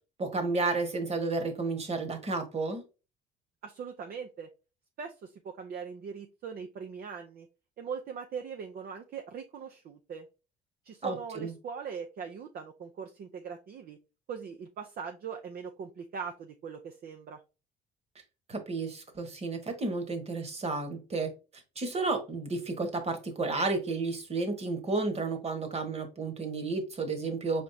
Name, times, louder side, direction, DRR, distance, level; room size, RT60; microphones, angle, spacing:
voice 1, 0.2-2.8 11.0-11.5 18.5-21.3 21.8-27.6, right 3 dB, 35° right, 1.3 m, -32 dB
voice 2, 3.6-4.5 5.0-7.5 7.8-10.3 10.8-14.0 14.3-17.4, right 6 dB, 50° right, 0.6 m, -41 dB
5.0 x 3.5 x 2.7 m
cardioid pair, 90°, 19 cm